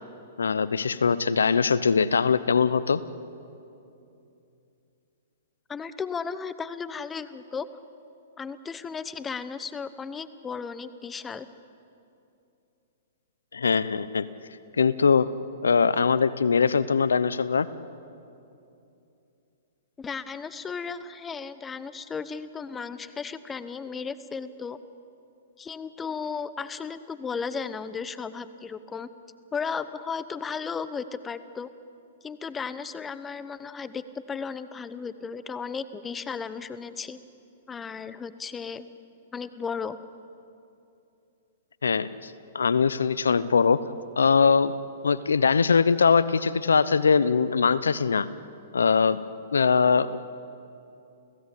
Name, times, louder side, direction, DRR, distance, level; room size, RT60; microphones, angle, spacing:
voice 1, 0.4-3.0 13.5-14.3 14.8-15.3 15.6-17.7 41.8-43.8 44.2-44.7 45.0-48.3 48.7-49.2 49.5-50.2, left 5 dB, 90° left, 17 dB, 0.8 m, -22 dB
voice 2, 5.7-7.7 8.4-11.5 20.0-24.8 25.6-29.1 29.5-31.7 32.2-37.2 37.7-38.9 39.3-40.0, left 5 dB, 15° left, 14 dB, 1.0 m, -35 dB
29.5 x 17.0 x 8.5 m, 2.7 s
hypercardioid pair, 125°, 0 cm